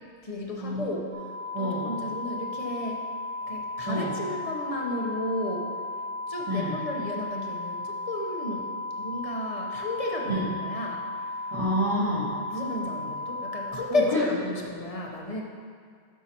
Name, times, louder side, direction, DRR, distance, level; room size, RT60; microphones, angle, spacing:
voice 1, 0.2-1.1 1.6-3.1 3.5-5.8 6.3-11.0 12.5-15.4, left 1 dB, 35° left, -1 dB, 0.9 m, -33 dB
sound 1, 1.1-13.7, left 2 dB, 60° right, 1.6 m, -35 dB
voice 2, 1.5-1.9 3.8-4.1 6.5-6.8 10.3-10.4 11.5-12.4 13.9-14.3, left 1 dB, 25° right, -11 dB, 1.5 m, -28 dB
12.0 x 5.6 x 2.9 m, 2.1 s
omnidirectional pair, 1.1 m